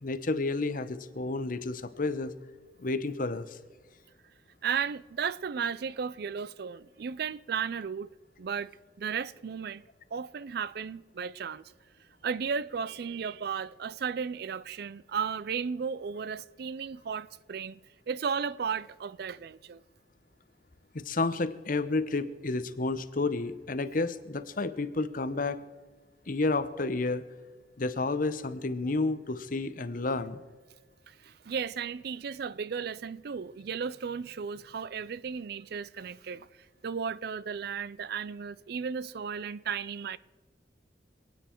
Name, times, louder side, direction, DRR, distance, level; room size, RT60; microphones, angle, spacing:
voice 1, 0.0-2.3 2.8-3.6 20.9-25.6 26.3-27.3 27.8-30.4, left 3 dB, 50° left, 0.8 m, -31 dB
voice 2, 4.6-8.1 8.4-8.7 9.0-9.8 10.1-11.6 12.2-17.8 18.1-19.8 31.1-36.5 36.8-40.2, right 6 dB, 60° right, 0.4 m, -34 dB
27.0 x 9.2 x 4.5 m
head